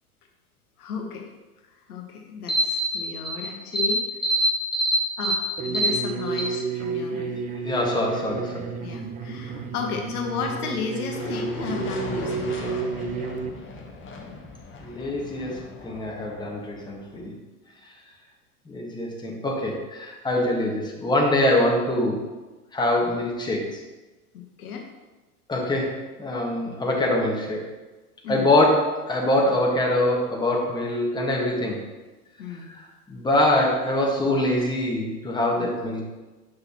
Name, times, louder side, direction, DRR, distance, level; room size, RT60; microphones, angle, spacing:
voice 1, 0.8-1.3 1.9-2.5 2.9-4.0 5.2-5.4 5.7-7.4 8.8-12.7 24.3-24.9 28.2-28.5 32.4-32.7 35.6-35.7, left 6 dB, 70° left, 3 dB, 1.1 m, -33 dB
voice 2, 2.5-3.5 3.7-3.9 4.2-5.9 6.3-6.4 7.6-8.7 14.8-17.3 18.7-22.2 22.7-23.8 25.5-27.7 28.3-31.8 32.7-36.0, left 1 dB, 10° left, -2 dB, 1.4 m, -24 dB
sound 1, 5.6-13.5, right 5 dB, 20° right, 0.4 m, -31 dB
sound 2, 11.1-17.3, left 3 dB, 25° left, 1.1 m, -38 dB
7.8 x 5.8 x 2.9 m, 1.2 s
hypercardioid pair, 90°, 46 cm